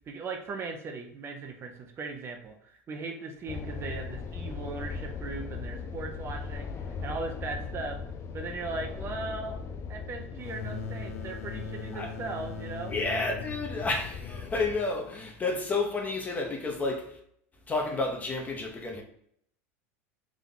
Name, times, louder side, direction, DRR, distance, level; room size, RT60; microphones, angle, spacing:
voice 1, 0.1-8.0 8.3-9.6 9.9-12.9, right 3 dB, 35° right, 0.6 m, -38 dB
sound 1, 3.5-14.8, left 5 dB, 35° left, 0.5 m, -39 dB
sound 2, 10.4-15.8, left 5 dB, 80° left, 0.6 m, -41 dB
voice 2, 12.9-17.2 17.7-19.0, left 3 dB, 20° left, 0.9 m, -31 dB
3.7 x 2.8 x 3.8 m
supercardioid pair, 110°, 8 cm